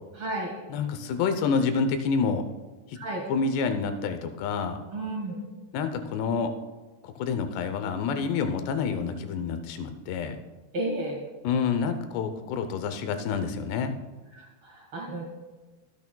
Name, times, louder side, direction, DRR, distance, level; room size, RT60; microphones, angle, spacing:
voice 1, 0.2-0.5 2.9-3.2 4.9-5.4 10.7-11.2 14.3-15.2, right 1 dB, 50° right, -1 dB, 1.7 m, -32 dB
voice 2, 0.7-2.4 3.3-4.8 5.7-6.5 7.0-10.4 11.4-13.9, left 5 dB, 85° left, 8 dB, 2.9 m, -28 dB
24.0 x 8.3 x 2.2 m, 1.2 s
omnidirectional pair, 4.8 m